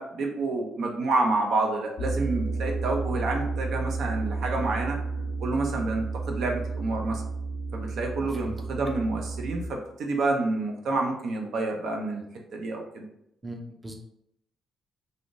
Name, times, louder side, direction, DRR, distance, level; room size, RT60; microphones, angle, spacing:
voice 1, 0.0-5.0 5.4-7.2 7.7-12.2 12.5-13.0, right 3 dB, 70° right, 2 dB, 0.6 m, -28 dB
sound 1, 2.0-9.7, right 3 dB, 85° left, 0.3 m, -32 dB
voice 2, 13.4-13.9, right 1 dB, 20° right, 2 dB, 0.5 m, -38 dB
3.4 x 2.6 x 2.5 m, 0.75 s
cardioid pair, 90°, 0 cm